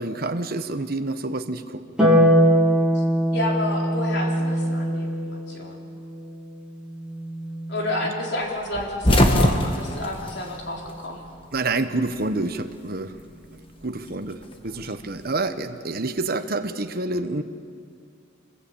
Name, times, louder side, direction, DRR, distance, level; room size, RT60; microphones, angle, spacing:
voice 1, 0.0-1.8 8.0-8.1 11.5-13.2 13.8-17.4, right 2 dB, 45° right, 8 dB, 1.1 m, -28 dB
Harp, 2.0-8.5 10.1-11.1, equal, 5° right, 4.0 m, -23 dB
voice 2, 3.3-5.8 7.7-11.2, left 1 dB, 55° left, 0 dB, 3.9 m, -30 dB
sound 1, 8.7-11.3 11.6-12.6 13.8-15.3, left 1 dB, 25° left, 1.6 m, -23 dB
25.5 x 21.0 x 8.8 m, 2.4 s
head